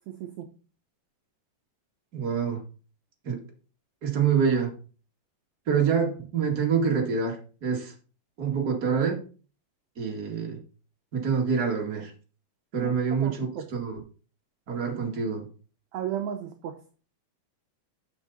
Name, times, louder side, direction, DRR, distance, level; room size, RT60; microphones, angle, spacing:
voice 1, 0.1-0.5 12.8-12.9 13.2-13.7 15.9-16.8, right 10 dB, 70° right, 5 dB, 1.9 m, -34 dB
voice 2, 2.1-2.6 3.2-3.4 4.0-4.7 5.7-7.9 8.4-9.2 10.0-10.6 11.1-12.1 12.7-14.0 14.7-15.5, right 6 dB, 30° right, 1 dB, 2.2 m, -26 dB
9.9 x 6.9 x 4.1 m, 0.37 s
omnidirectional pair, 3.9 m